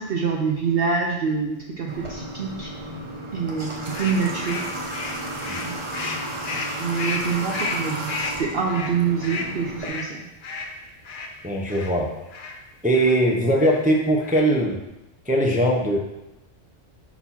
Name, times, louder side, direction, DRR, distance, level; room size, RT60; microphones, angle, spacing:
voice 1, 0.0-2.7 3.3-4.6 5.6-5.8 6.8-10.2, right 5 dB, 55° right, 0 dB, 0.7 m, -26 dB
Water / Water tap faucet, 1.9-9.9, right 1 dB, 30° right, 0.8 m, -33 dB
sound 1, 3.9-11.9 12.3-12.6 12.9-13.2 13.6-13.8 14.2-14.6, left 3 dB, 50° left, 0.8 m, -33 dB
voice 2, 11.4-12.1 12.8-14.8 15.3-16.0, right 1 dB, 15° right, -1 dB, 0.3 m, -20 dB
5.6 x 4.2 x 4.3 m, 0.95 s
omnidirectional pair, 1.3 m